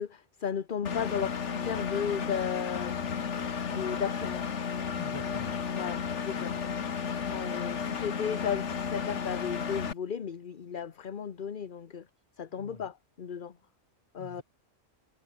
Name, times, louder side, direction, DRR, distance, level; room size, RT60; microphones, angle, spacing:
voice 1, 0.0-3.0 3.6-4.5 5.7-6.5 7.3-12.1 12.4-13.6 14.1-14.4, left 7 dB, 45° left, 1.1 m, -35 dB
Engine, 0.9-9.9, left 6 dB, 75° left, 1.7 m, -33 dB
voice 2, 5.0-6.0 12.6-12.9 14.2-14.4, left 1 dB, 25° left, 3.1 m, -47 dB
omnidirectional pair, 1.2 m